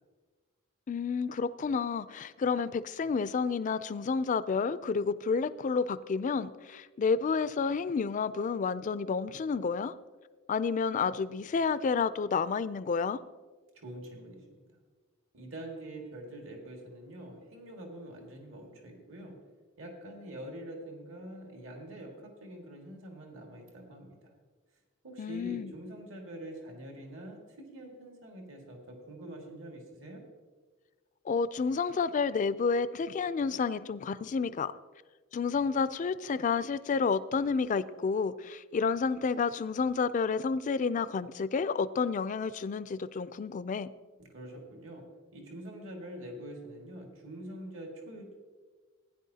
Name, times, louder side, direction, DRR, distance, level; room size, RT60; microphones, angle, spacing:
voice 1, 0.9-9.9 10.5-13.2 25.2-25.7 31.3-34.7 35.3-43.9, left 5 dB, 40° left, 15 dB, 0.3 m, -30 dB
voice 2, 13.8-14.5 15.3-19.4 19.8-24.3 25.0-30.2 44.2-45.0 45.3-48.3, right 1 dB, 70° right, 1 dB, 1.9 m, -45 dB
15.5 x 9.9 x 2.8 m, 1.4 s
head